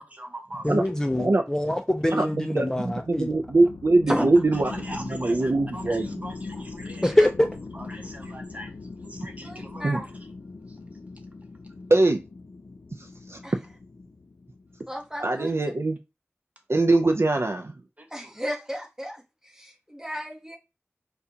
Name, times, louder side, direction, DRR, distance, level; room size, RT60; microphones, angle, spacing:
voice 1, 0.1-0.8 4.2-4.3 4.6-7.3 7.7-8.7 9.0-10.3 10.7-10.8 18.0-18.3, equal, 30° right, 1.0 m, -42 dB
voice 2, 0.6-3.3 7.0-7.5, left 1 dB, 15° left, 0.4 m, -24 dB
voice 3, 2.1-4.7 5.1-6.1 9.8-10.0 11.9-12.2 13.3-13.4 15.2-16.0 16.7-17.7, right 2 dB, 60° right, 0.4 m, -22 dB
sound 1, 2.8-14.9, left 3 dB, 80° left, 0.4 m, -40 dB
voice 4, 9.4-10.1 13.4-13.6 14.9-15.5 18.1-20.6, equal, 10° right, 1.2 m, -33 dB
4.9 x 2.3 x 2.7 m
wide cardioid pair, 50°, 5 cm